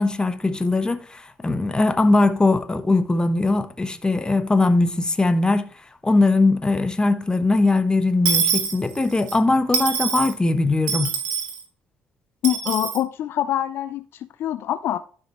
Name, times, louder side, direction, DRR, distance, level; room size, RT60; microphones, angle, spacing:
voice 1, 0.0-5.7 6.0-11.1, left 2 dB, 20° left, 1.1 m, -20 dB
Dishes pots and pans / Coin (dropping), 8.2-9.4 9.7-10.3 10.9-11.6 12.4-13.0, right 6 dB, 80° right, 1.4 m, -24 dB
voice 2, 12.4-14.0 14.4-15.0, left 11 dB, 60° left, 0.4 m, -24 dB
12.5 x 4.9 x 3.0 m
hypercardioid pair, 50°, 5 cm